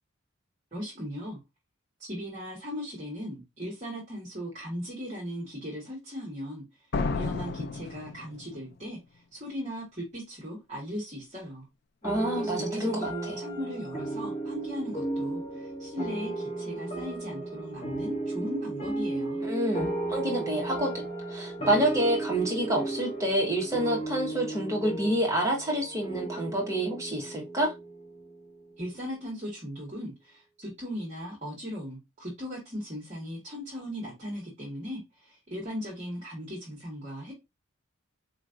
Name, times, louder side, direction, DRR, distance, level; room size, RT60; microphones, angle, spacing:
voice 1, 0.7-1.4 2.0-6.6 7.1-11.7 12.4-19.4 28.8-37.3, equal, 30° right, 1.3 m, -38 dB
sound 1, 6.9-8.7, left 3 dB, 55° left, 0.4 m, -32 dB
sound 2, 12.0-28.8, right 2 dB, 30° left, 1.3 m, -35 dB
voice 2, 12.0-13.4 19.4-27.7, right 1 dB, 15° right, 1.1 m, -28 dB
4.4 x 3.1 x 2.5 m
head